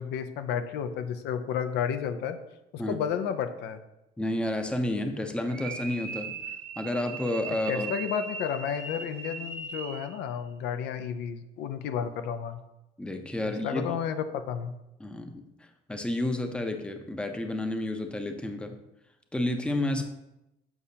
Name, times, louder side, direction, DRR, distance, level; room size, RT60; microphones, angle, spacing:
voice 1, 0.0-2.4 2.7-3.8 7.7-12.6 13.4-14.7, left 8 dB, 85° left, 9 dB, 0.5 m, -32 dB
voice 2, 4.2-6.3 6.8-7.9 13.0-13.9 15.0-15.4 15.9-18.8 19.3-20.0, left 1 dB, 5° left, 6 dB, 0.6 m, -30 dB
sound 1, 5.5-10.2, right 4 dB, 55° right, 0.8 m, -39 dB
6.8 x 5.6 x 2.7 m, 0.91 s
cardioid pair, 110°, 17 cm